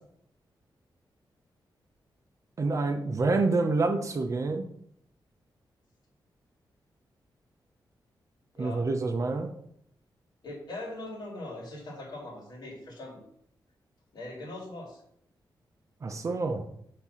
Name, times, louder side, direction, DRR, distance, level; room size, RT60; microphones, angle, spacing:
voice 1, 2.6-4.7 8.6-9.5 16.0-16.6, right 3 dB, 40° right, 6 dB, 0.7 m, -27 dB
voice 2, 8.6-8.9 10.4-13.2 14.1-15.0, left 2 dB, 60° left, -1 dB, 2.2 m, -41 dB
6.7 x 3.6 x 5.7 m, 0.69 s
wide cardioid pair, 150°, 8 cm